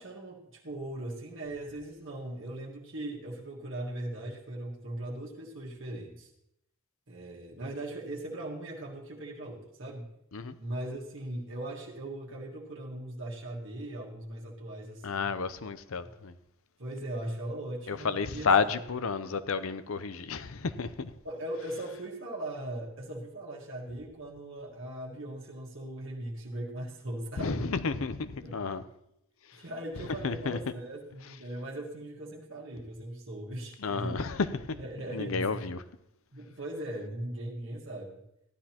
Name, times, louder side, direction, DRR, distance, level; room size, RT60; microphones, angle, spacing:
voice 1, 0.0-6.3 7.1-10.1 10.6-15.3 16.8-18.5 21.2-27.7 28.4-28.6 29.5-34.2 34.7-35.6 36.3-38.2, right 1 dB, 60° right, 1.6 m, -39 dB
voice 2, 15.0-16.3 17.9-21.1 27.4-28.8 29.5-29.6 30.2-30.6 33.8-34.8 35.1-35.8, left 5 dB, 70° left, 0.6 m, -31 dB
15.5 x 11.5 x 2.9 m
head